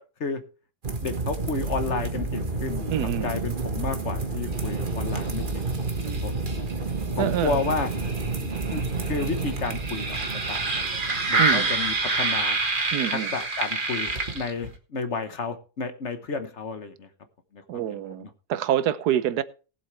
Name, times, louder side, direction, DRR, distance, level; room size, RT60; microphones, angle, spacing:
sound 1, 0.8-14.7, right 3 dB, 35° right, 1.5 m, -28 dB
voice 1, 1.0-2.8 3.2-5.7 6.2-6.3 7.2-7.9 8.7-12.6 13.3-17.1 17.5-17.6 17.9-18.3, left 4 dB, 50° left, 1.3 m, -31 dB
voice 2, 2.9-3.4 6.0-6.2 7.2-7.6 11.4-11.7 12.9-13.3 17.7-19.4, right 11 dB, 85° right, 1.3 m, -27 dB
19.5 x 7.5 x 3.2 m
omnidirectional pair, 1.7 m